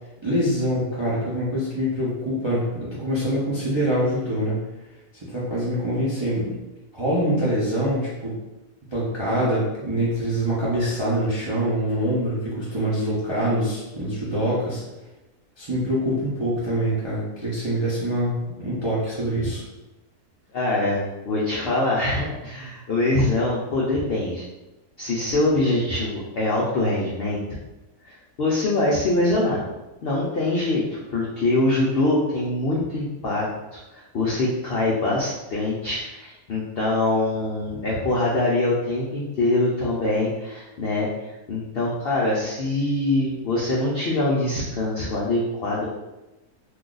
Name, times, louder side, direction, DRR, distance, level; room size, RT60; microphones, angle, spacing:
voice 1, 0.2-4.6 5.2-6.6 6.9-8.4 8.9-14.8 15.6-19.6, equal, 40° right, -8 dB, 0.3 m, -24 dB
voice 2, 20.5-24.4 25.0-27.4 28.0-29.6 30.0-33.5 33.7-41.1 41.5-45.9, left 2 dB, 75° left, -5 dB, 0.5 m, -24 dB
2.6 x 2.3 x 3.8 m, 1.0 s
omnidirectional pair, 1.7 m